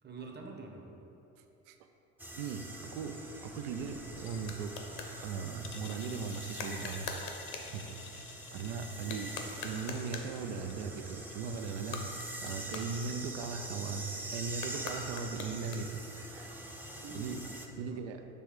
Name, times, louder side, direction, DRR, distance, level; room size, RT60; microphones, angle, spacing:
voice 1, 0.0-0.9 17.0-18.0, right 3 dB, 25° right, 2 dB, 1.0 m, -46 dB
sound 1, 2.2-17.7, right 1 dB, 5° right, 0.6 m, -44 dB
voice 2, 2.4-4.7 5.2-7.1 7.7-9.3 9.6-12.0 12.4-16.6 17.1-17.4 17.8-18.2, right 5 dB, 65° right, 6 dB, 0.6 m, -39 dB
sound 2, 3.5-10.9, left 8 dB, 35° left, 0.4 m, -53 dB
sound 3, 4.4-5.2 6.5-7.8 9.0-10.4 11.7-13.6 14.5-16.1, left 5 dB, 60° left, 0.9 m, -44 dB
6.9 x 3.4 x 4.8 m, 2.9 s
hypercardioid pair, 75°, 38 cm